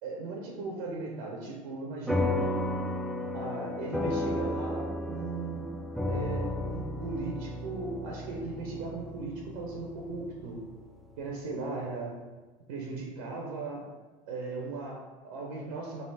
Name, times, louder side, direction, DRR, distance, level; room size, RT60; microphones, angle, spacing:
voice 1, 0.0-2.4 3.3-5.7 6.1-10.6 11.2-12.1 12.7-13.8 14.3-16.0, right 3 dB, 75° right, -1 dB, 0.6 m, -37 dB
sound 1, 2.1-10.8, left 1 dB, ahead, 0.4 m, -33 dB
3.4 x 2.6 x 4.0 m, 1.3 s
hypercardioid pair, 70°, 18 cm